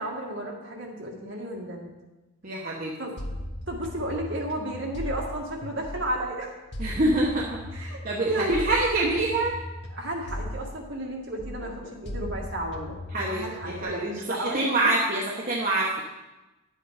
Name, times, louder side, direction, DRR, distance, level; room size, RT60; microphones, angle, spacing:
voice 1, 0.0-1.9 3.0-3.1 3.7-6.5 7.7-8.7 9.9-14.9, right 1 dB, 60° right, -1 dB, 1.9 m, -33 dB
voice 2, 2.4-2.9 3.2-3.3 6.8-9.6 13.1-16.0, right 2 dB, 40° right, -3 dB, 1.0 m, -26 dB
sound 1, 3.2-6.3 6.7-11.1 11.4-13.8, left 1 dB, 55° left, 1.1 m, -37 dB
10.0 x 7.8 x 4.9 m, 1.1 s
head